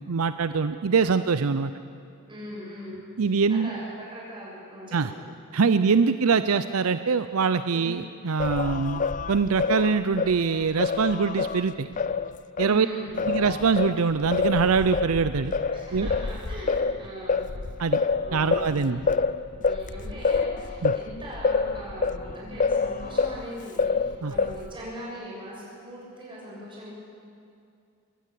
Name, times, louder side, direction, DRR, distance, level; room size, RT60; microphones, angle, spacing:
voice 1, 0.0-1.7 3.2-3.7 4.9-5.1 5.5-9.0 9.3-11.9 12.6-12.9 13.3-15.5 15.9-16.1 17.8-18.0 18.3-19.0 20.8-20.9 24.2-24.3, right 5 dB, 75° right, 12 dB, 0.6 m, -23 dB
voice 2, 2.3-3.0 3.5-5.3 5.7-5.9 7.7-7.9 12.6-13.3 15.7-17.5 18.2-19.1 19.6-26.9, equal, 25° right, -5 dB, 7.5 m, -40 dB
Singing, 8.4-12.8 13.2-23.4 23.8-24.8, left 4 dB, 35° left, 0.5 m, -27 dB
23.0 x 16.0 x 8.5 m, 2.4 s
head